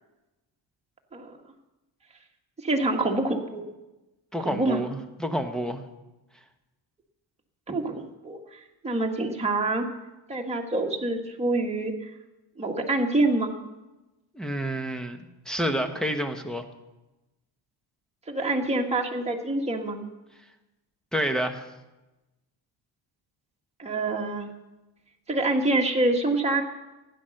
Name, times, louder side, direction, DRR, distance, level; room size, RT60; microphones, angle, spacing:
voice 1, 2.6-3.6 4.4-4.8 7.7-8.4 8.8-9.9 10.3-11.9 12.6-13.5 18.3-20.0 23.8-24.5 25.3-26.6, right 2 dB, 15° right, 1 dB, 1.6 m, -26 dB
voice 2, 4.3-5.8 14.3-16.6 21.1-21.6, equal, ahead, 6 dB, 1.0 m, -29 dB
16.5 x 10.5 x 6.5 m, 1.0 s
cardioid pair, 155°, 46 cm